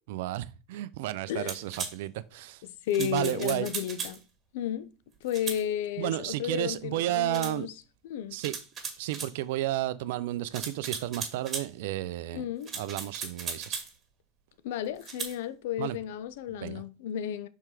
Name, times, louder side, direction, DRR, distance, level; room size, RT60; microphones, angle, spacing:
voice 1, 0.1-2.6 3.0-3.7 6.0-7.7 8.3-8.6 9.0-12.4 12.7-13.8 15.8-16.0 16.6-16.8, right 14 dB, 75° right, 0.5 m, -32 dB
voice 2, 1.3-1.6 2.6-4.2 4.5-4.9 5.2-7.7 8.0-8.4 12.3-12.7 14.6-17.5, left 10 dB, 75° left, 0.7 m, -33 dB
sound 1, 1.5-2.0 2.9-4.2 5.3-5.6 7.3-7.6 8.4-9.3 10.5-11.7 12.6-13.9 15.0-15.4, right 5 dB, 30° right, 2.0 m, -37 dB
5.6 x 4.6 x 4.8 m
supercardioid pair, 110°, 0 cm